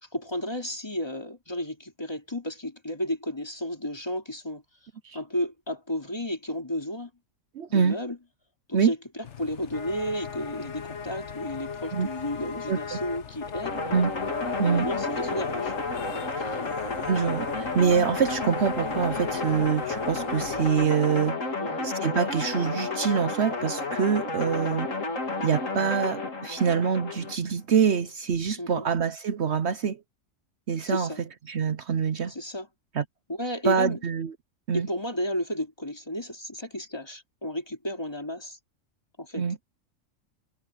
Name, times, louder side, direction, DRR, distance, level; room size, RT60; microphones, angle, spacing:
voice 1, 0.1-4.6 5.1-7.1 7.7-8.2 8.7-9.0 9.4-13.8 14.7-15.7 16.6-16.7 21.6-22.0 28.6-28.9 30.8-31.2 32.3-32.7 33.3-34.0 34.7-38.6 39.2-39.4, left 1 dB, 20° left, 2.6 m, -33 dB
voice 2, 7.5-8.0 8.7-8.9 11.9-12.1 12.7-13.0 13.9-14.1 14.6-14.9 16.4-16.6 17.1-21.5 21.8-24.9 25.4-30.0 30.7-31.1 31.5-32.3 32.9-33.0 33.6-34.3 34.7-34.9 39.4-39.6, right 7 dB, 60° right, 1.0 m, -25 dB
sound 1, 9.2-20.9, left 6 dB, 65° left, 1.3 m, -37 dB
sound 2, 13.6-27.4, left 3 dB, 85° left, 3.3 m, -31 dB
omnidirectional pair, 1.3 m